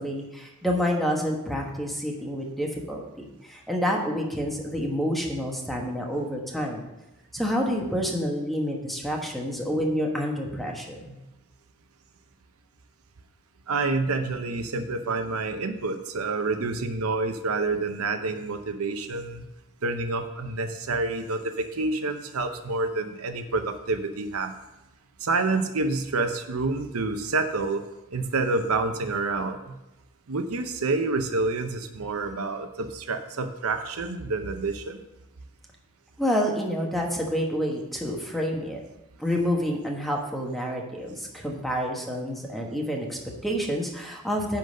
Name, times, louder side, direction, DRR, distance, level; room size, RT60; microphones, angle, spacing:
voice 1, 0.0-6.9 7.3-11.1 36.2-38.8 39.2-44.6, equal, ahead, 0 dB, 1.2 m, -28 dB
voice 2, 13.7-19.5 19.8-24.5 25.2-27.8 28.1-29.8 30.3-35.0, right 3 dB, 80° right, 7 dB, 0.8 m, -28 dB
10.5 x 3.9 x 6.5 m, 0.97 s
head